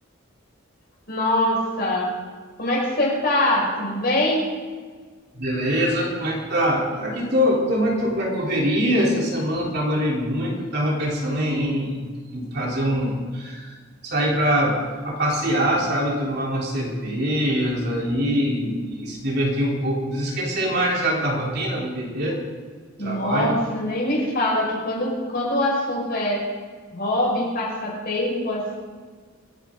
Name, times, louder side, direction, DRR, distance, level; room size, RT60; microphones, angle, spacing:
voice 1, 1.1-2.1 2.6-4.5 23.0-26.4 26.9-28.7, left 1 dB, 50° left, -3 dB, 5.7 m, -23 dB
voice 2, 5.3-13.7 14.0-14.8 15.0-22.4 23.0-23.5, equal, 50° right, -3 dB, 3.5 m, -23 dB
26.0 x 10.5 x 3.8 m, 1.5 s
head